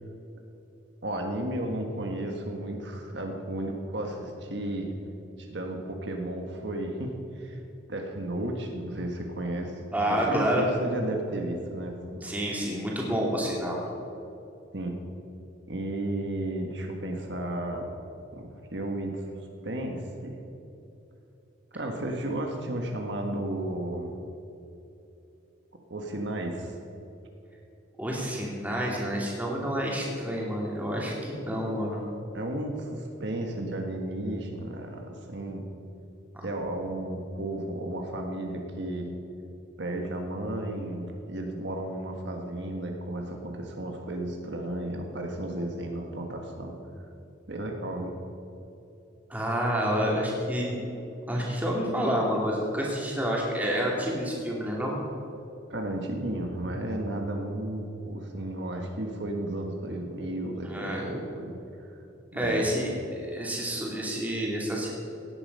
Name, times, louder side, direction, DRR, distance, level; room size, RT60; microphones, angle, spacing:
voice 1, 1.0-4.9 5.4-7.6 7.9-9.8 10.1-12.3 13.4-13.6 14.7-15.0 15.7-17.9 18.3-19.2 19.6-20.4 21.7-24.2 25.9-26.7 32.3-35.7 36.4-39.1 39.8-46.7 47.5-48.1 55.7-61.6 62.3-62.7, right 1 dB, 65° right, 2 dB, 1.4 m, -33 dB
voice 2, 9.9-10.7 12.2-13.8 28.0-32.0 49.3-50.8 51.3-54.9 60.7-61.1 62.3-62.9 63.3-65.0, equal, 10° right, -3 dB, 2.6 m, -28 dB
17.0 x 9.8 x 5.4 m, 2.9 s
head